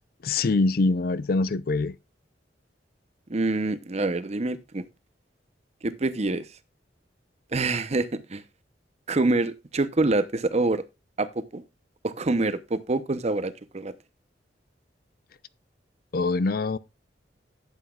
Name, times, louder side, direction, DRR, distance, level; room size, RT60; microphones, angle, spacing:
voice 1, 0.2-2.0 16.1-16.8, left 3 dB, 55° left, 0.5 m, -24 dB
voice 2, 3.3-4.9 5.8-6.4 7.5-8.4 9.1-10.8 11.2-11.6 12.0-13.9, right 2 dB, 40° right, 0.7 m, -26 dB
11.5 x 8.2 x 2.3 m
head